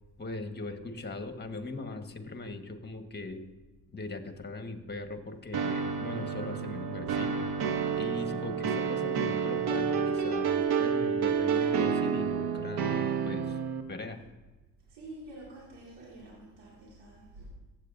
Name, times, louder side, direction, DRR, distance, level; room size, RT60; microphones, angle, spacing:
voice 1, 0.2-3.4 3.9-7.5 8.0-13.6 13.9-14.2, left 2 dB, 25° left, 6 dB, 1.4 m, -40 dB
sound 1, 5.5-13.8, right 6 dB, 65° right, 1.0 m, -29 dB
voice 2, 14.9-17.5, right 1 dB, 85° right, -5 dB, 2.4 m, -48 dB
15.5 x 8.1 x 2.7 m, 1.2 s
supercardioid pair, 65°, 42 cm